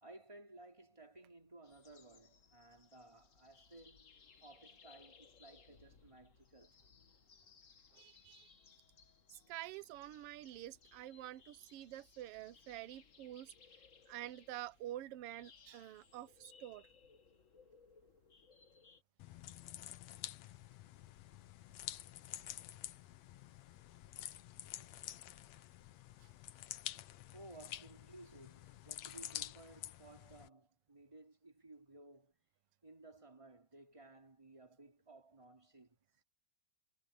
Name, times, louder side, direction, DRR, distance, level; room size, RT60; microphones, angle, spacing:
voice 1, 0.0-6.7 24.2-24.3 24.7-24.9 27.3-32.3 32.8-36.0, right 2 dB, 10° right, 3.1 m, -58 dB
sound 1, 1.6-19.0, left 5 dB, 45° left, 1.0 m, -65 dB
voice 2, 7.9-8.5 9.3-13.5 14.1-16.9, right 13 dB, 65° right, 1.6 m, -48 dB
sound 2, 19.2-30.5, left 13 dB, 70° left, 2.0 m, -49 dB
omnidirectional pair, 3.3 m